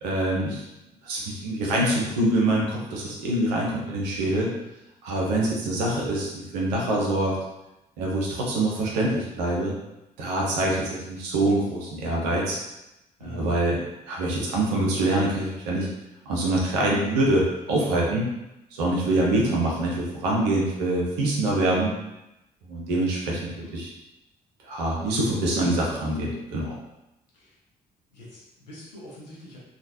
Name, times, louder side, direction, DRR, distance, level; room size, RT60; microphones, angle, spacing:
voice 1, 0.0-0.6 1.0-4.5 5.0-7.4 8.0-9.7 10.2-12.6 13.2-13.8 14.1-15.9 16.3-18.3 18.7-21.9 22.6-23.9 24.6-26.8, right 1 dB, 75° right, -3 dB, 0.7 m, -25 dB
voice 2, 13.2-13.6 23.5-23.8 27.3-27.5 28.1-29.6, left 1 dB, 80° left, -6 dB, 0.7 m, -44 dB
3.1 x 2.3 x 2.7 m, 0.92 s
figure-of-eight pair, 40°, 21 cm